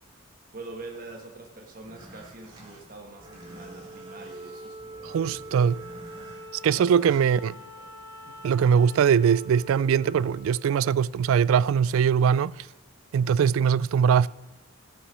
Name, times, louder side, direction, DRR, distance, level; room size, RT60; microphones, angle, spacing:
voice 1, 0.5-5.8 6.6-7.1 7.6-7.9 8.3-8.4, right 3 dB, 40° right, 1.4 m, -45 dB
sound 1, 1.7-7.3, right 1 dB, 20° right, 2.8 m, -50 dB
Wind instrument woodwind instrument, 3.2-11.8, equal, 10° left, 2.6 m, -45 dB
voice 2, 5.0-5.8 6.6-7.5 8.4-12.7 13.1-14.3, right 7 dB, 80° right, 0.3 m, -21 dB
14.0 x 6.9 x 6.2 m
head